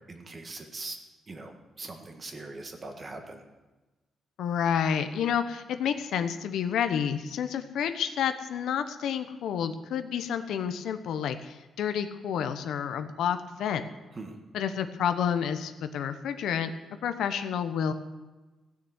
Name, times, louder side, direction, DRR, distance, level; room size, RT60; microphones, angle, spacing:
voice 1, 0.1-1.0 1.3-3.4 14.1-14.4, right 2 dB, 30° right, 4 dB, 1.7 m, -41 dB
voice 2, 4.4-13.8 14.5-16.7 17.0-17.9, left 8 dB, 85° left, 9 dB, 0.9 m, -29 dB
16.0 x 6.7 x 8.2 m, 1.2 s
cardioid pair, 145°, 0 cm